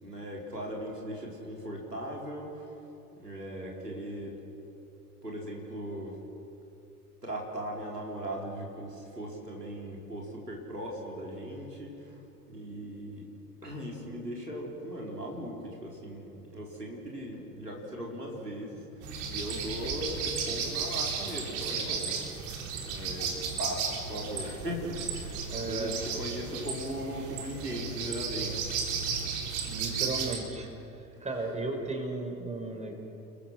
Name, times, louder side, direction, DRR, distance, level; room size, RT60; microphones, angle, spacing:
voice 1, 0.0-2.7 3.2-4.4 5.2-6.2 7.2-12.2 12.5-13.3 13.6-22.1 22.8-29.3 31.1-31.3, equal, 90° right, -2 dB, 4.2 m, -39 dB
sound 1, 19.0-30.4, right 6 dB, 55° right, 4.0 m, -34 dB
voice 2, 25.5-25.9 29.6-30.7 31.2-32.9, right 3 dB, 15° right, 2 dB, 5.5 m, -35 dB
29.5 x 21.5 x 6.4 m, 2.8 s
figure-of-eight pair, 75°, 46 cm